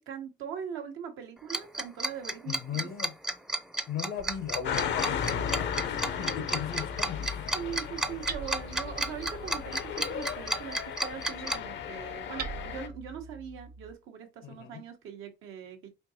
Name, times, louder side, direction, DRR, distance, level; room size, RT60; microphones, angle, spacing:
voice 1, 0.0-2.9 6.1-6.5 7.5-15.9, right 8 dB, 90° right, 0.9 m, -41 dB
Tick-tock, 1.5-11.6, right 1 dB, 5° right, 0.4 m, -32 dB
voice 2, 2.5-3.1 3.9-7.5 14.4-14.8, left 8 dB, 85° left, 0.8 m, -38 dB
Hammer, 4.2-13.9, right 5 dB, 55° right, 0.5 m, -46 dB
sound 1, 4.6-12.9, left 8 dB, 65° left, 0.5 m, -35 dB
4.4 x 2.7 x 2.7 m
cardioid pair, 90°, 20 cm